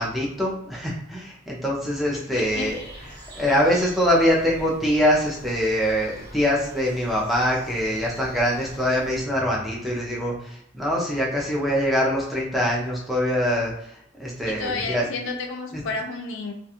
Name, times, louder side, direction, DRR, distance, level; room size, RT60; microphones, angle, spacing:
voice 1, 0.0-2.8 3.4-15.1 15.7-15.8, equal, ahead, -4 dB, 0.4 m, -24 dB
voice 2, 2.1-2.7 14.5-16.5, left 3 dB, 60° left, 2 dB, 0.4 m, -31 dB
sound 1, 2.4-9.2, equal, 85° right, 0.9 m, -44 dB
2.4 x 2.2 x 2.8 m, 0.71 s
head